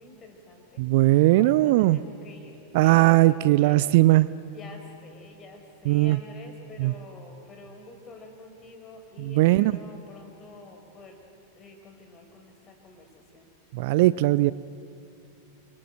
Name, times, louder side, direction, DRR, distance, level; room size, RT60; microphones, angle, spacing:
voice 1, 0.0-0.8 1.4-3.3 3.6-4.0 4.5-11.2 11.5-13.5, left 2 dB, 25° left, 4 dB, 5.0 m, -47 dB
voice 2, 0.8-2.0 2.7-4.3 5.9-6.2 6.8-6.9 9.2-9.7 13.7-14.5, right 18 dB, 50° right, 18 dB, 0.5 m, -19 dB
30.0 x 24.5 x 7.9 m, 2.9 s
figure-of-eight pair, 90°, 0 cm